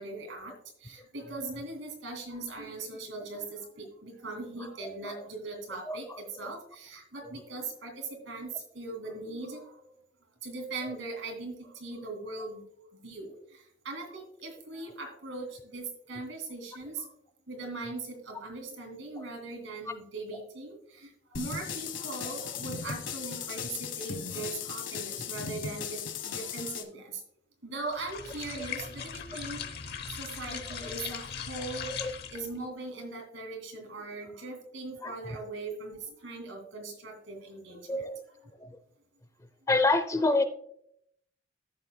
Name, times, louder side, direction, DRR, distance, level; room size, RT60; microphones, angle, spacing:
voice 1, 0.0-9.9 10.4-12.7 12.9-17.1 17.5-27.2 27.6-38.1 38.4-38.5, right 3 dB, 80° right, 3 dB, 2.5 m, -40 dB
voice 2, 4.6-5.3 5.8-6.5 7.2-7.4 10.8-11.0 19.2-19.3 20.3-20.5 22.2-22.4 28.6-28.7 30.8-30.9 31.9-32.1 35.0-35.4 37.9-38.2 38.6-38.8 39.7-40.4, left 2 dB, 15° left, 11 dB, 0.5 m, -30 dB
sound 1, 21.3-26.8, left 7 dB, 75° left, 1.0 m, -37 dB
sound 2, 27.9-32.6, left 7 dB, 55° left, 0.8 m, -39 dB
14.0 x 7.1 x 2.2 m, 0.72 s
head